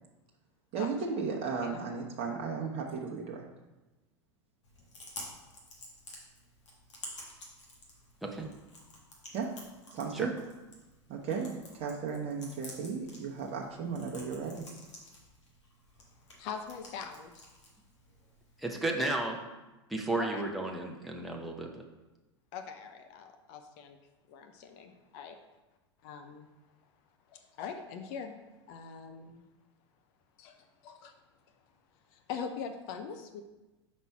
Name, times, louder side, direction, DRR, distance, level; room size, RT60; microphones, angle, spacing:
voice 1, 0.7-3.4 9.3-9.5 9.9-10.3 11.1-14.7, right 5 dB, 40° right, -1 dB, 0.9 m, -35 dB
Chewing mastication, 4.6-18.6, left 1 dB, 80° left, 1.7 m, -51 dB
voice 2, 16.4-17.5 20.2-20.4 22.5-24.0 24.3-25.4 26.0-26.5 27.3-29.4 30.4-31.1 32.1-33.4, left 6 dB, 50° left, 7 dB, 0.6 m, -42 dB
voice 3, 18.6-19.4 19.9-21.8, right 2 dB, ahead, 0 dB, 0.7 m, -33 dB
5.4 x 4.2 x 4.6 m, 1.1 s
hypercardioid pair, 90°, 15 cm